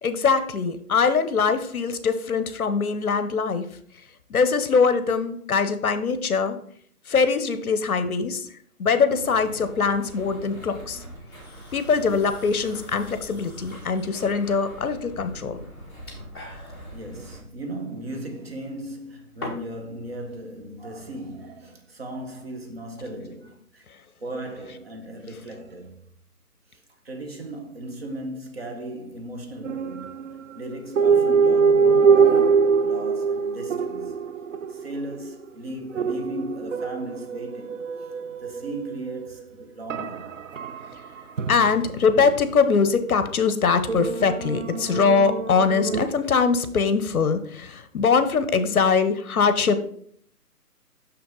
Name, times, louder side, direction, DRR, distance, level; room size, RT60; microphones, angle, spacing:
voice 1, 0.0-3.7 4.3-6.6 7.1-8.5 8.8-11.0 11.7-15.6 41.5-49.8, left 5 dB, 65° left, 0.8 m, -22 dB
sound 1, 9.0-17.4, right 1 dB, 10° right, 1.5 m, -43 dB
sound 2, 11.3-19.9, left 2 dB, 15° left, 0.9 m, -45 dB
voice 2, 16.9-23.9 24.2-26.1 26.7-30.2 30.5-34.1 34.7-38.1 38.4-40.4 44.7-44.9, right 1 dB, 40° right, 1.1 m, -37 dB
sound 3, 29.6-30.4 31.0-35.5 35.9-39.3 39.9-42.5 43.9-46.1, right 5 dB, 55° right, 0.5 m, -23 dB
6.3 x 5.9 x 3.8 m
hypercardioid pair, 170°, 46 cm